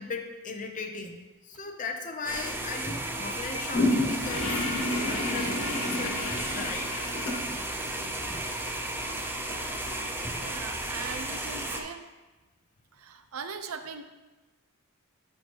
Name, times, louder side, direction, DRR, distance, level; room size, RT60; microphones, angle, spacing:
voice 1, 0.0-7.0, left 4 dB, 35° left, 4 dB, 0.6 m, -38 dB
sound 1, 2.3-11.8, right 1 dB, 10° right, 0.5 m, -34 dB
sound 2, 3.7-11.8, left 1 dB, 60° left, 1.7 m, -32 dB
voice 2, 10.4-12.0 13.0-14.0, right 5 dB, 90° right, 9 dB, 0.5 m, -39 dB
10.0 x 4.5 x 2.9 m, 1.2 s
head